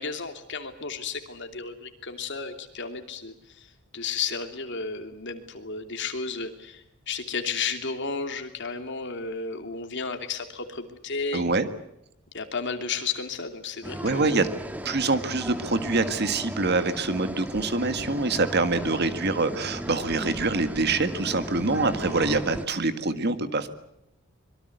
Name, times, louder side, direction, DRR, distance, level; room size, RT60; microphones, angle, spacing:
voice 1, 0.0-3.7 3.9-11.5 12.3-14.5, left 5 dB, 55° left, 6 dB, 2.9 m, -33 dB
voice 2, 11.3-11.7 14.0-14.5 14.8-23.7, right 3 dB, 50° right, 10 dB, 1.7 m, -25 dB
sound 1, 13.8-22.7, equal, 5° right, 1.6 m, -36 dB
25.5 x 23.0 x 8.0 m, 0.83 s
head